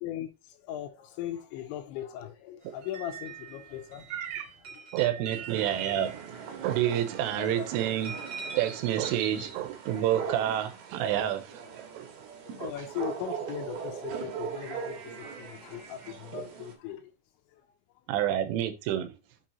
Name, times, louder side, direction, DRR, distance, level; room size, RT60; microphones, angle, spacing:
voice 1, 0.0-4.1 4.7-4.9 7.4-7.7 12.5-17.1 17.5-17.6, left 11 dB, 80° left, 2.9 m, -39 dB
sound 1, 2.6-8.8, right 6 dB, 40° right, 2.1 m, -45 dB
voice 2, 4.1-4.5 4.9-6.1 6.6-8.1 8.6-12.1 12.6-12.7 16.3-16.4 18.1-19.1, right 11 dB, 90° right, 3.4 m, -29 dB
sound 2, 5.5-16.7, right 6 dB, 65° right, 2.9 m, -40 dB
7.5 x 5.6 x 2.8 m
omnidirectional pair, 5.6 m